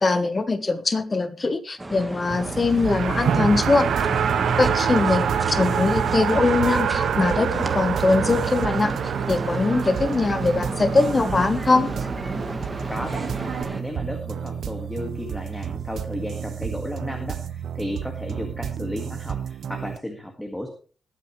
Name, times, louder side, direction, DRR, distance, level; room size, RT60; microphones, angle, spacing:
voice 1, 0.0-3.9 4.6-8.9 9.3-11.9, left 3 dB, 25° left, 12 dB, 1.2 m, -22 dB
sound 1, 1.8-13.8, right 1 dB, 10° right, 1.5 m, -33 dB
Race car auto racing, 2.3-13.6, right 7 dB, 90° right, 1.1 m, -26 dB
sound 2, 3.4-20.0, right 8 dB, 70° right, 0.6 m, -32 dB
voice 2, 12.9-20.7, left 1 dB, 5° left, 3 dB, 1.9 m, -33 dB
20.5 x 9.2 x 3.2 m, 0.37 s
wide cardioid pair, 145°, 0 cm